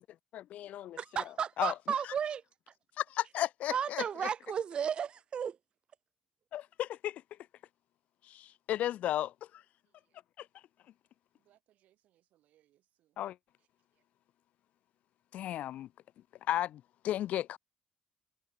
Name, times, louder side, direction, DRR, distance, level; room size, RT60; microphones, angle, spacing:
voice 1, 0.3-1.0 1.6-1.7 3.0-4.0 6.5-7.2 8.2-9.6 10.4-10.5 13.2-13.4 15.3-15.9 16.5-17.6, left 12 dB, 70° left, 0.5 m, -34 dB
voice 2, 1.0-2.4 3.7-5.6, right 7 dB, 40° right, 0.7 m, -34 dB
voice 3, 9.8-10.2 11.3-13.2 13.6-14.1, right 13 dB, 85° right, 6.2 m, -73 dB
cardioid pair, 155°, 3 cm